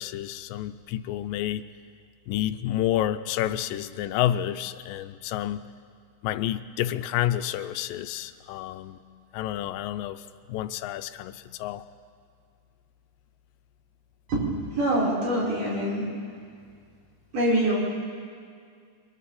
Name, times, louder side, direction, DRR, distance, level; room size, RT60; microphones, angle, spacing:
voice 1, 0.0-1.6 2.3-5.6 6.2-9.0 9.3-11.8, left 12 dB, 90° left, 12 dB, 2.4 m, -29 dB
voice 2, 14.3-16.1 17.3-17.7, right 1 dB, 65° right, -6 dB, 7.2 m, -25 dB
29.5 x 23.0 x 4.3 m, 2.2 s
omnidirectional pair, 3.9 m